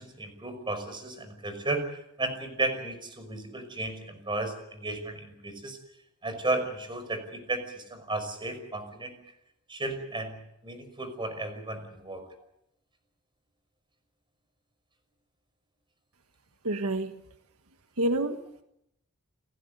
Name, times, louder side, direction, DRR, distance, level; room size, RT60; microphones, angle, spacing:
voice 1, 0.0-5.8 6.2-9.2 9.7-10.4 10.6-12.3, right 2 dB, 20° right, 8 dB, 5.5 m, -34 dB
voice 2, 16.6-17.1 18.0-18.6, right 1 dB, 85° right, 7 dB, 1.6 m, -28 dB
30.0 x 16.0 x 8.0 m, 0.81 s
head